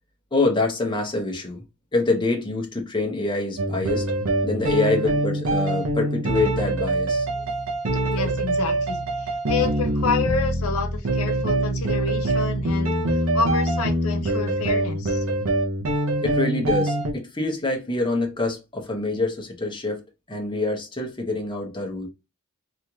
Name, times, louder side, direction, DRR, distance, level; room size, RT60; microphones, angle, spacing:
voice 1, 0.3-1.6 1.9-4.1 4.4-7.3 8.2-8.3 16.2-22.1, left 2 dB, 20° left, 0.8 m, -25 dB
sound 1, 3.6-17.1, right 1 dB, 70° right, 0.7 m, -24 dB
voice 2, 8.1-15.2, left 5 dB, 80° left, 0.6 m, -29 dB
3.1 x 2.9 x 2.3 m
head